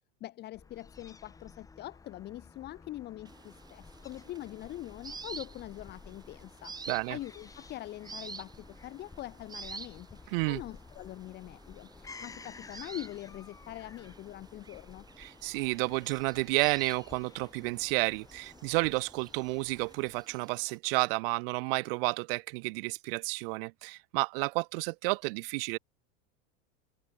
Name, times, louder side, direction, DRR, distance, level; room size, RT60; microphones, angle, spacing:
voice 1, 0.2-15.1, left 15 dB, 30° left, 1.9 m, -44 dB
Fowl / Gull seagull, 0.5-20.4, left 4 dB, 10° left, 3.9 m, -53 dB
sound 1, 3.2-20.8, right 5 dB, 10° right, 3.2 m, -50 dB
voice 2, 6.9-7.2 10.3-10.6 15.2-25.8, right 28 dB, 55° right, 1.2 m, -31 dB
supercardioid pair, 170°, 34 cm